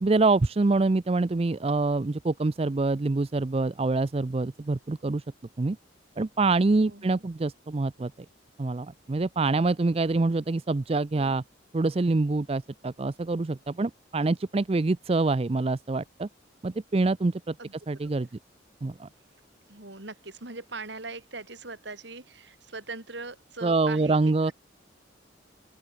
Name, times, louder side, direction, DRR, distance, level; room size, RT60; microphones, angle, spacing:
voice 1, 0.0-5.2 5.6-5.8 6.2-8.1 8.6-11.4 11.7-16.3 16.6-17.5 17.9-18.3 18.8-19.1 23.6-24.5, right 3 dB, 30° right, 0.4 m, -25 dB
voice 2, 6.8-7.2 11.1-11.4 17.6-17.7 18.0-18.1 19.7-24.2, right 3 dB, 65° right, 3.5 m, -41 dB
open air
head